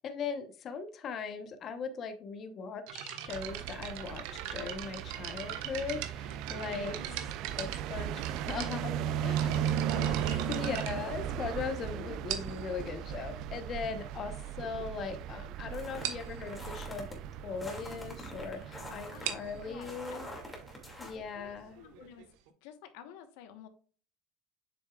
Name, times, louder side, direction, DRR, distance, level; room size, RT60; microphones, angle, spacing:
voice 1, 0.0-7.1 7.6-9.5 9.9-17.1 17.4-20.2 21.0-21.8, left 5 dB, 40° left, 8 dB, 0.9 m, -39 dB
sound 1, 2.9-11.7 12.3-12.7 13.5-13.6 14.3-14.4 14.6-14.8 15.2-15.3 15.5-15.6 16.0-16.3 19.0-22.5, right 11 dB, 80° right, 1.2 m, -41 dB
sound 2, 3.3-21.2, right 10 dB, 60° right, 0.4 m, -37 dB
voice 2, 6.7-7.3 9.4-10.6 19.1-20.3 21.1-22.3 22.6-23.7, left 9 dB, 80° left, 8 dB, 1.2 m, -51 dB
sound 3, 15.7-17.1 17.6-21.2, left 1 dB, 10° left, 2.4 m, -46 dB
7.9 x 6.3 x 2.4 m, 0.40 s
cardioid pair, 140°, 0 cm